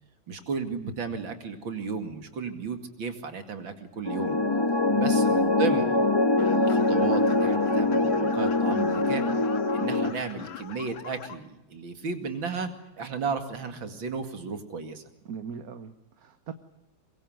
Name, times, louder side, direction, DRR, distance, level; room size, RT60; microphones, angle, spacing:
voice 1, 0.3-4.4 5.0-5.9 6.4-9.2 9.7-12.7 13.0-15.0, right 5 dB, 75° right, 7 dB, 3.1 m, -34 dB
sound 1, 4.1-10.1, left 2 dB, 20° left, 0.8 m, -23 dB
sound 2, 6.4-11.4, left 9 dB, 90° left, 2.1 m, -41 dB
voice 2, 15.2-16.5, right 6 dB, 50° right, 9 dB, 1.6 m, -40 dB
24.5 x 22.5 x 7.8 m, 0.89 s
omnidirectional pair, 2.1 m